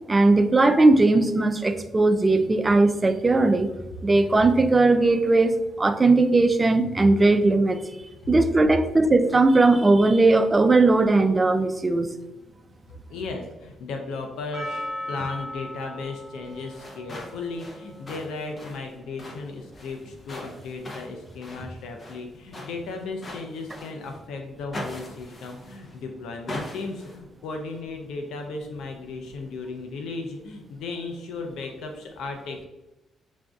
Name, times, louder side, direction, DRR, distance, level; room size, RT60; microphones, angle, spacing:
voice 1, 0.1-3.7 4.0-7.8 8.3-12.1, right 2 dB, 20° right, 8 dB, 0.4 m, -19 dB
voice 2, 13.1-32.7, left 3 dB, 85° left, 3 dB, 0.4 m, -35 dB
Percussion, 14.5-18.9 19.5-19.6, left 1 dB, 5° right, 1.0 m, -38 dB
sound 1, 16.6-24.2 24.7-26.0 26.5-27.2, left 1 dB, 35° left, 0.7 m, -41 dB
6.0 x 2.5 x 2.3 m, 1.0 s
cardioid pair, 90°, 0 cm